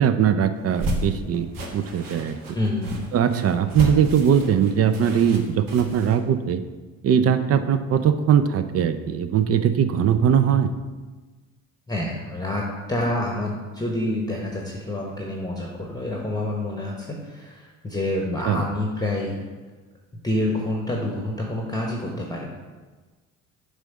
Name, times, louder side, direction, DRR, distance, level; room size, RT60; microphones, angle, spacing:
voice 1, 0.0-2.4 3.1-6.6 7.0-10.7 18.5-18.7, right 8 dB, 40° right, 11 dB, 0.5 m, -20 dB
sound 1, 0.6-6.2, equal, 55° right, 1.3 m, -32 dB
voice 2, 2.5-3.0 11.9-19.4 20.1-22.5, left 1 dB, 10° left, -1 dB, 1.0 m, -27 dB
6.4 x 3.8 x 5.2 m, 1.3 s
hypercardioid pair, 60°, 40 cm